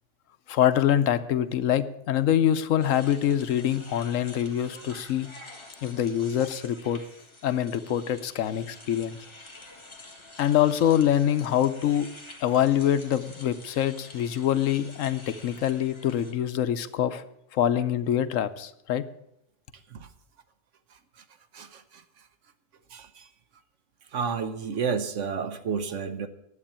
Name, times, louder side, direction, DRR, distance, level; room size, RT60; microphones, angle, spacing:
voice 1, 0.5-5.3 5.8-7.0 7.4-9.2 10.4-12.1 12.4-17.2 17.5-19.0, left 10 dB, 85° left, 13 dB, 1.1 m, -25 dB
sound 1, 2.8-16.3, left 2 dB, 25° left, 1.5 m, -48 dB
voice 2, 21.5-22.0 22.9-23.3 24.1-26.3, right 6 dB, 70° right, 10 dB, 1.2 m, -31 dB
11.0 x 8.1 x 8.6 m, 0.80 s
omnidirectional pair, 1.3 m